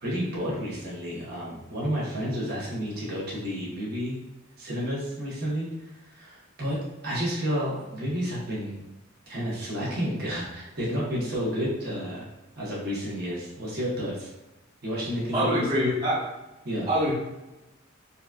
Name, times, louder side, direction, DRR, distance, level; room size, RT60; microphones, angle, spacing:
voice 1, 0.0-4.2 4.6-5.7 6.0-6.8 7.0-8.8 9.3-12.3 12.6-14.3 14.8-15.9 16.6-16.9, equal, 50° right, -6 dB, 1.0 m, -31 dB
voice 2, 15.3-16.2 16.9-17.2, equal, 20° right, -10 dB, 0.8 m, -24 dB
3.9 x 2.4 x 2.3 m, 0.97 s
head